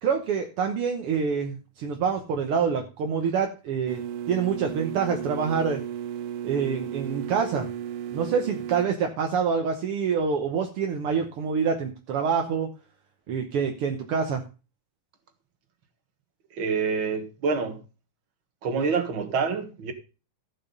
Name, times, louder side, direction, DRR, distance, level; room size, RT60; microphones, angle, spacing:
voice 1, 0.0-4.0 4.3-5.8 6.4-7.7 8.1-12.7 13.3-14.4, right 6 dB, 60° right, 1.5 m, -26 dB
sound 1, 3.9-8.9, right 10 dB, 85° right, 2.4 m, -34 dB
voice 2, 16.5-17.8 18.6-19.9, right 5 dB, 45° right, 2.0 m, -27 dB
15.0 x 6.0 x 5.3 m
omnidirectional pair, 3.7 m